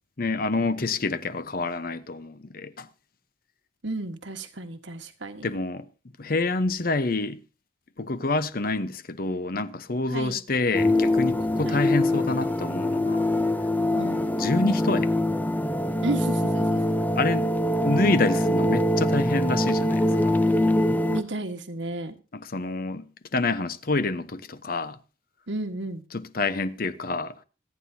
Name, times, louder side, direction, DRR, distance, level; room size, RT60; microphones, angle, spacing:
voice 1, 0.2-2.9 5.4-5.9 6.2-7.4 8.0-13.3 14.0-15.1 17.1-20.4 22.3-23.1 23.3-25.0 26.1-27.4, left 3 dB, 50° left, 0.9 m, -27 dB
voice 2, 3.8-5.6 10.1-10.4 11.6-11.8 13.9-14.2 16.0-16.9 21.1-22.1 25.5-26.0, right 2 dB, 75° right, 1.5 m, -33 dB
sound 1, 10.7-21.2, left 1 dB, 10° left, 0.6 m, -23 dB
26.0 x 9.6 x 2.8 m
head